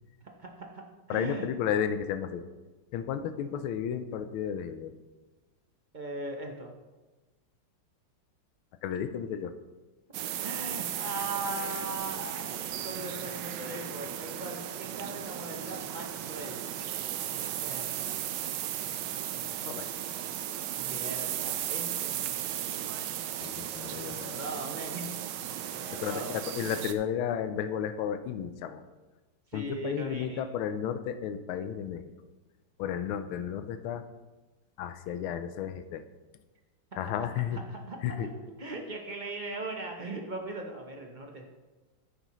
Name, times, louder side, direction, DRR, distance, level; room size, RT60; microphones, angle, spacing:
voice 1, 0.2-1.5 5.9-6.7 10.4-16.7 17.6-18.2 20.8-22.2 22.7-22.9 23.9-25.1 25.7-26.4 29.5-30.5 37.0-41.5, right 2 dB, 45° right, 2 dB, 0.5 m, -39 dB
voice 2, 1.1-2.4 2.9-4.9 8.8-9.5 19.6-19.9 23.4-24.4 26.0-28.8 29.5-32.1 32.8-34.0 34.8-36.0 37.0-37.6 38.0-38.3, left 8 dB, 85° left, 9 dB, 1.5 m, -33 dB
sound 1, 10.1-26.9, right 10 dB, 70° right, 1.1 m, -35 dB
10.5 x 9.4 x 3.1 m, 1.2 s
omnidirectional pair, 2.2 m